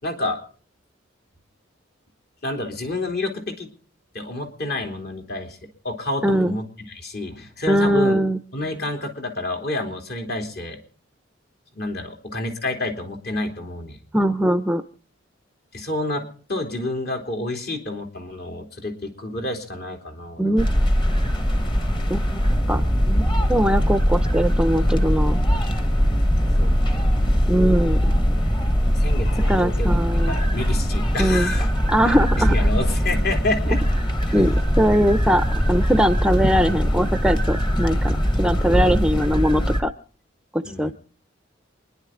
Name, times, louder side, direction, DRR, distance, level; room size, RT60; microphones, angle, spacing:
voice 1, 0.0-0.4 2.4-3.7 4.1-5.6 5.8-8.1 8.5-10.8 11.7-14.0 15.7-16.2 16.5-20.7 26.6-27.0 28.9-29.9 30.3-31.7 32.1-33.8 34.3-34.4 38.8-39.0 40.6-40.9, left 2 dB, 55° left, 2 dB, 3.1 m, -29 dB
voice 2, 6.2-6.6 7.7-8.4 14.1-14.8 20.4-20.7 22.1-22.8 23.1-23.2 23.5-25.4 27.5-28.0 29.5-30.4 31.2-31.5 31.9-32.7 34.3-39.9 40.5-40.9, equal, 5° right, 10 dB, 0.6 m, -21 dB
sound 1, 20.6-39.8, equal, 25° left, 1.4 m, -21 dB
27.5 x 10.5 x 3.8 m, 0.42 s
head